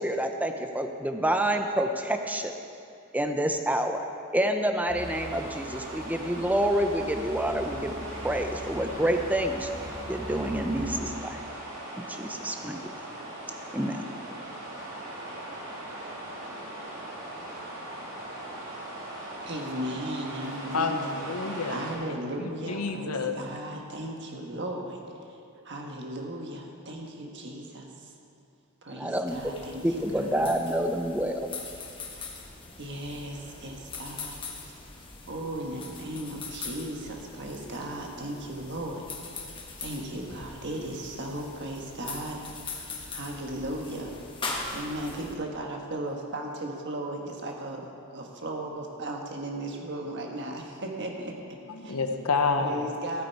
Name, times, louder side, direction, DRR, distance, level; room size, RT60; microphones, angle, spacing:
voice 1, 0.0-2.5 3.1-4.0 4.3-9.7 10.1-11.4 12.0-12.8 13.7-14.0 28.9-29.4 29.8-31.5, right 1 dB, 5° right, 5 dB, 0.6 m, -28 dB
sound 1, 4.9-11.0, equal, 30° right, 1.1 m, -42 dB
sound 2, 5.0-21.9, right 1 dB, 75° right, 2.8 m, -40 dB
voice 2, 19.5-21.1 21.7-25.4 25.6-28.1 28.8-30.5 32.8-34.4 34.7-34.8 35.3-39.1 39.8-42.6 43.1-44.2 44.7-52.0 52.6-53.2, right 1 dB, 55° right, 1 dB, 1.4 m, -36 dB
voice 3, 20.7-21.8 22.4-23.4 51.7-52.9, left 4 dB, 85° left, 6 dB, 0.9 m, -29 dB
sound 3, 29.3-45.3, left 3 dB, 25° left, 1.3 m, -41 dB
15.0 x 8.6 x 4.7 m, 2.6 s
head